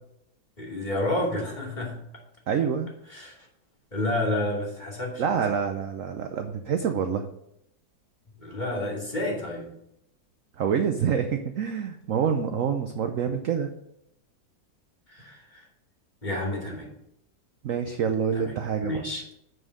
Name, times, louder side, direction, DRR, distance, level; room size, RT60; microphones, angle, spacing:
voice 1, 0.6-2.0 3.1-3.4 3.9-5.4 8.4-9.7 15.1-15.6 16.2-16.9 18.3-18.5 18.8-19.2, left 1 dB, 25° left, -4 dB, 2.8 m, -30 dB
voice 2, 2.5-2.9 5.2-7.2 10.6-13.7 17.6-18.9, right 7 dB, 65° right, 6 dB, 0.8 m, -26 dB
7.2 x 6.3 x 6.4 m, 0.78 s
omnidirectional pair, 2.0 m